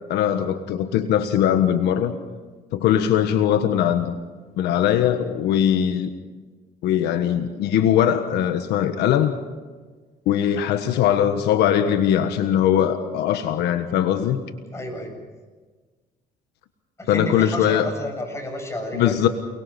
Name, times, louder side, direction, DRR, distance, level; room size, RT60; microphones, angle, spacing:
voice 1, 0.1-2.2 2.7-4.1 4.6-6.1 6.8-9.3 10.3-14.4 17.1-17.9 18.9-19.3, left 10 dB, 80° left, 8 dB, 1.4 m, -20 dB
voice 2, 14.7-15.1 17.0-19.1, left 1 dB, 15° left, 2 dB, 7.9 m, -31 dB
29.5 x 20.5 x 5.9 m, 1.4 s
cardioid pair, 110°, 17 cm